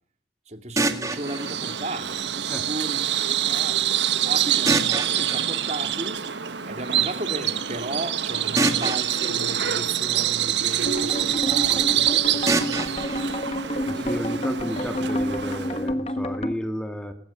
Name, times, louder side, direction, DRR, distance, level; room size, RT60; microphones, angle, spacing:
voice 1, 0.5-3.8 4.2-6.2 6.6-13.0, right 1 dB, 35° right, 2.2 m, -35 dB
sound 1, 0.8-2.8 4.7-6.6 8.6-10.8 12.5-14.5, right 2 dB, 15° right, 2.0 m, -29 dB
Bird vocalization bird call bird song, 1.1-15.9, right 10 dB, 75° right, 1.5 m, -26 dB
sound 2, 10.8-16.5, equal, 30° left, 1.4 m, -29 dB
voice 2, 13.9-17.1, equal, 5° left, 1.7 m, -32 dB
20.5 x 20.5 x 9.9 m
head